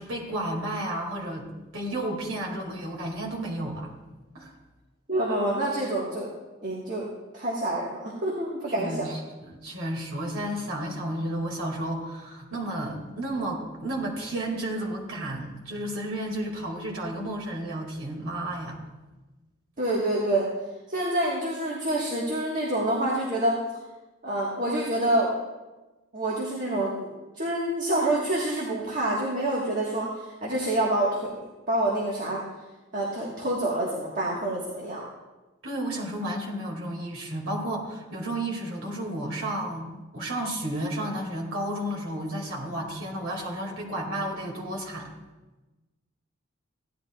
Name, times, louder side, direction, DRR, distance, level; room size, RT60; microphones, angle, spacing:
voice 1, 0.0-1.5 1.7-3.9 4.3-4.5 8.8-18.8 35.6-45.1, right 1 dB, 75° right, -1 dB, 2.2 m, -32 dB
voice 2, 5.1-6.3 6.6-7.1 7.3-9.1 19.8-20.5 20.9-23.6 24.2-25.3 26.1-27.1 27.4-31.3 31.7-32.4 32.9-35.0, right 1 dB, 40° right, -4 dB, 1.5 m, -27 dB
16.0 x 11.0 x 2.3 m, 1.1 s
head